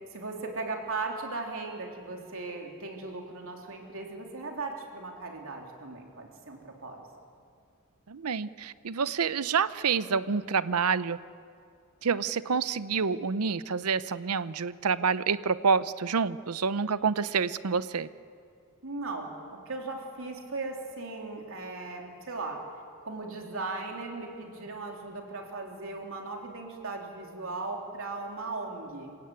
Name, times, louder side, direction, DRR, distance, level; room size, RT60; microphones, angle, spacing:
voice 1, 0.1-7.1 18.8-22.6 23.0-29.2, right 3 dB, 65° right, 1 dB, 3.6 m, -37 dB
voice 2, 8.1-11.2 12.0-18.1, right 5 dB, 85° right, 15 dB, 0.7 m, -28 dB
27.5 x 16.5 x 9.1 m, 2.3 s
head